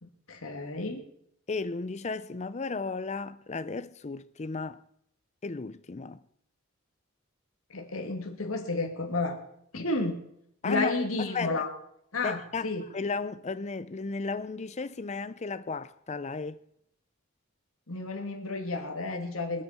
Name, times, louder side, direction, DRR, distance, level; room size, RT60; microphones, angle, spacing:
voice 1, 0.0-1.0 7.7-9.4 9.7-10.2 10.6-11.7 12.1-12.8 17.9-19.6, left 3 dB, 90° left, 2.3 m, -31 dB
voice 2, 1.5-4.8 5.4-6.2 10.6-10.9 11.2-11.6 12.2-16.6, left 4 dB, 35° left, 0.5 m, -34 dB
23.5 x 8.4 x 4.3 m
head